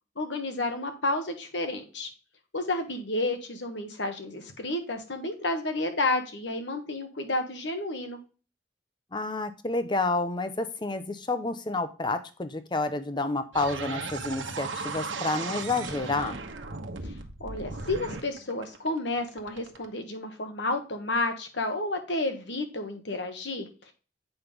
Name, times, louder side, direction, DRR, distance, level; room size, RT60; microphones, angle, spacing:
voice 1, 0.2-2.1 2.5-8.2 17.0-17.1 17.4-23.9, left 2 dB, 70° left, 6 dB, 1.5 m, -31 dB
voice 2, 9.1-16.4, left 3 dB, 25° left, 10 dB, 0.7 m, -29 dB
sound 1, 13.5-19.9, right 4 dB, 80° right, 1.1 m, -36 dB
8.0 x 5.6 x 3.3 m, 0.35 s
head